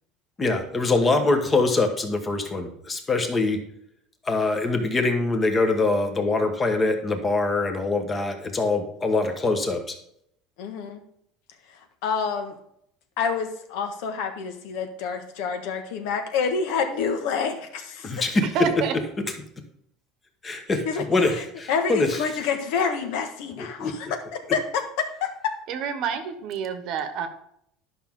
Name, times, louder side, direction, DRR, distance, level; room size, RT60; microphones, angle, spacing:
voice 1, 0.4-3.6 4.2-9.9 18.0-18.5 20.4-22.2 23.6-23.9, left 3 dB, 15° left, 6 dB, 1.1 m, -24 dB
voice 2, 10.6-11.0 12.0-12.5 13.2-18.1 20.8-25.5, left 6 dB, 65° left, 6 dB, 1.3 m, -28 dB
voice 3, 18.5-18.9 25.7-27.3, right 6 dB, 50° right, 9 dB, 1.1 m, -28 dB
11.0 x 6.0 x 3.6 m, 0.72 s
cardioid pair, 165°, 0 cm